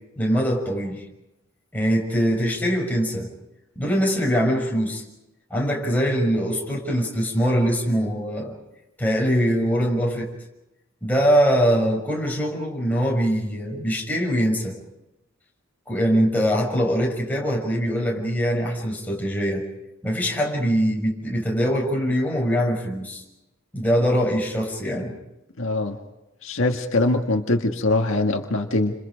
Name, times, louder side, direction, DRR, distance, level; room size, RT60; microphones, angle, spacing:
voice 1, 0.2-1.0 1.7-3.3 3.7-5.0 5.5-8.5 9.0-10.3 11.0-14.7 15.9-19.6 20.0-23.2 23.7-25.1, equal, 10° left, -1 dB, 6.5 m, -22 dB
voice 2, 25.6-26.0 26.4-28.9, left 2 dB, 65° left, 2 dB, 1.9 m, -22 dB
29.5 x 27.0 x 5.2 m, 0.94 s
head